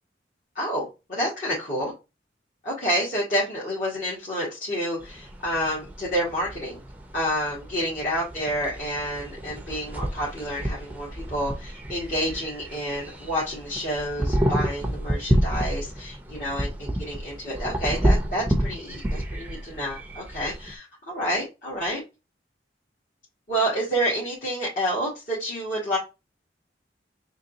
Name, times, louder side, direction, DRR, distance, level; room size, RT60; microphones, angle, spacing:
voice 1, 0.6-1.9 2.6-6.8 7.1-22.0 23.5-26.0, equal, 50° left, -7 dB, 2.0 m, -29 dB
sound 1, 5.0-20.7, equal, 10° right, 0.6 m, -29 dB
4.0 x 3.1 x 2.7 m, 0.26 s
head